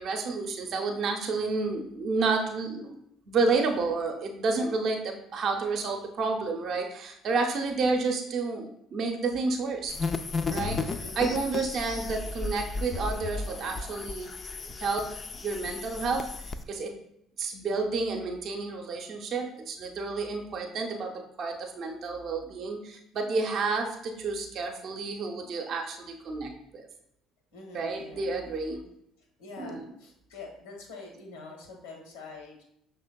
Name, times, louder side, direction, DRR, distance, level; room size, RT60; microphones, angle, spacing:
voice 1, 0.0-3.0 3.3-9.9 10.5-14.3 14.8-16.3 16.7-17.0 17.4-26.9 27.7-28.8 29.6-29.9, right 4 dB, 55° right, 3 dB, 0.6 m, -30 dB
sound 1, 9.9-16.6, left 3 dB, 35° left, 0.3 m, -34 dB
voice 2, 11.0-11.3 27.5-28.3 29.4-32.6, left 3 dB, 80° left, 1 dB, 1.0 m, -45 dB
5.6 x 3.2 x 2.2 m, 0.76 s
hypercardioid pair, 60°, 0 cm